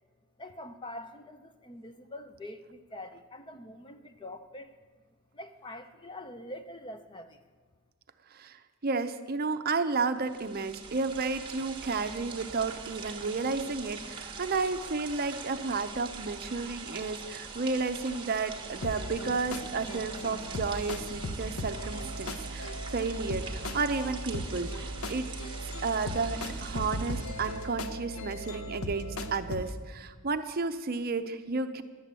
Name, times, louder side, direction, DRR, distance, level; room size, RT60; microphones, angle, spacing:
voice 1, 0.4-4.7 5.3-7.4, left 1 dB, 20° left, 9 dB, 0.6 m, -44 dB
voice 2, 8.3-25.3 25.8-31.8, right 4 dB, 45° right, 9 dB, 0.6 m, -32 dB
sound 1, 10.2-27.8, right 5 dB, 25° right, 1.2 m, -43 dB
sound 2, 18.8-29.7, equal, 80° left, 0.8 m, -38 dB
11.5 x 7.8 x 8.1 m, 1.4 s
head